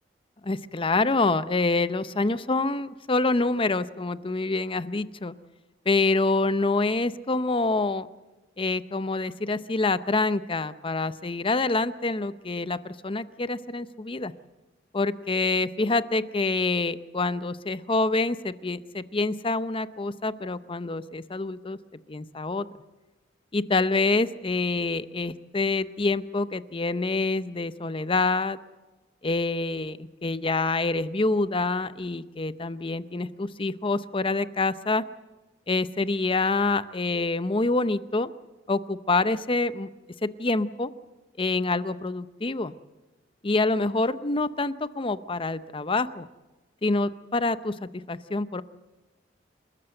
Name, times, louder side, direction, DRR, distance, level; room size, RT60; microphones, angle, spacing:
voice 1, 0.4-5.4 5.9-8.1 8.6-14.3 14.9-21.8 22.1-22.7 23.5-28.6 29.2-35.0 35.7-38.3 38.7-39.9 40.2-40.9 41.4-42.8 43.4-46.3 46.8-48.6, left 3 dB, 30° left, 14 dB, 0.7 m, -26 dB
28.5 x 13.5 x 7.7 m, 1.2 s
head